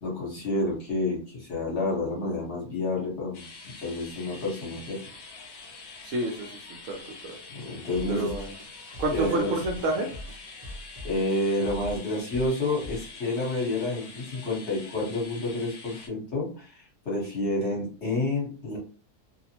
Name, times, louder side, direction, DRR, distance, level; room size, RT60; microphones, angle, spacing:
voice 1, 0.0-3.4 3.8-5.0 7.5-8.5 9.1-9.5 11.0-18.8, left 2 dB, 50° left, -3 dB, 1.2 m, -29 dB
sound 1, 3.3-16.1, left 4 dB, 65° left, 1.0 m, -45 dB
voice 2, 6.0-6.6 6.9-7.3 8.1-8.5 9.0-10.1, right 2 dB, 65° right, 1 dB, 0.8 m, -28 dB
sound 2, 7.9-13.2, left 1 dB, 40° right, 0.5 m, -41 dB
2.7 x 2.0 x 2.8 m, 0.38 s
omnidirectional pair, 1.6 m